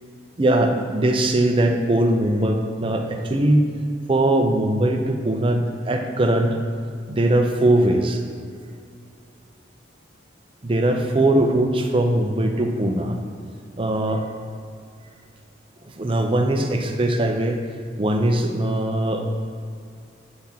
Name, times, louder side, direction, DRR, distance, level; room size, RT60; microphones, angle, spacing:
voice 1, 0.4-3.7 4.1-6.6 7.1-8.2 10.6-13.2 13.8-14.2 16.0-17.6 18.0-19.4, right 1 dB, 30° right, 3 dB, 0.5 m, -20 dB
8.8 x 3.5 x 5.7 m, 2.3 s
head